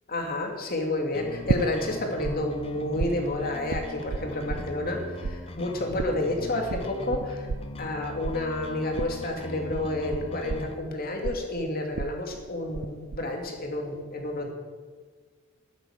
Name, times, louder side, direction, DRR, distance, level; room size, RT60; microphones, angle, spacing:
voice 1, 0.1-7.5 7.8-14.5, left 1 dB, 50° left, 3 dB, 2.6 m, -30 dB
sound 1, 1.1-10.7, left 2 dB, 30° left, 1.0 m, -40 dB
sound 2, 1.5-2.3 2.6-5.0 5.2-12.9 13.1-13.6, right 4 dB, 85° right, 0.5 m, -32 dB
12.5 x 12.5 x 6.6 m, 1.5 s
head